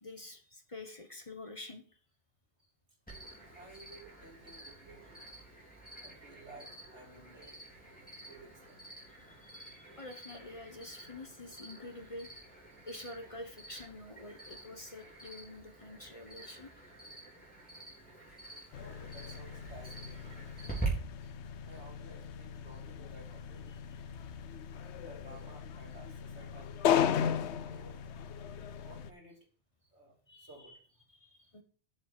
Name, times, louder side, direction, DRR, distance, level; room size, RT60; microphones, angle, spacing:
voice 1, 0.0-2.0 9.2-12.4 12.9-16.9 23.7-23.8 30.3-30.7 31.1-31.6, left 2 dB, 30° left, 7 dB, 1.1 m, -48 dB
Cricket, 3.1-20.9, right 3 dB, 5° left, 3.9 m, -48 dB
voice 2, 3.5-7.6 8.2-8.9 9.4-9.5 12.7-12.8 18.5-20.4 21.2-21.4 21.6-23.9 24.8-26.8 27.1-28.1 28.7-29.5 29.9-31.0 31.4-31.5, right 2 dB, 85° right, -1 dB, 3.4 m, -56 dB
sound 1, 18.7-29.1, left 8 dB, 80° left, 1.0 m, -36 dB
7.7 x 7.1 x 6.6 m, 0.41 s
omnidirectional pair, 1.1 m